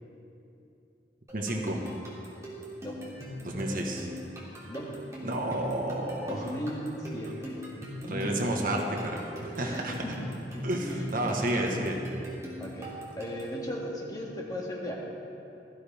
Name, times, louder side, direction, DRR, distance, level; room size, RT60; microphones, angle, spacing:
sound 1, 1.3-13.6, equal, 15° right, 3.0 m, -41 dB
voice 1, 1.3-1.8 3.4-4.1 5.2-6.6 8.1-10.0 10.6-12.0, right 1 dB, 55° right, 1 dB, 1.4 m, -31 dB
voice 2, 4.7-5.0 6.3-7.7 8.0-8.5 9.6-10.7 12.6-14.9, equal, 20° left, -2 dB, 1.8 m, -37 dB
18.0 x 13.5 x 3.6 m, 2.8 s
head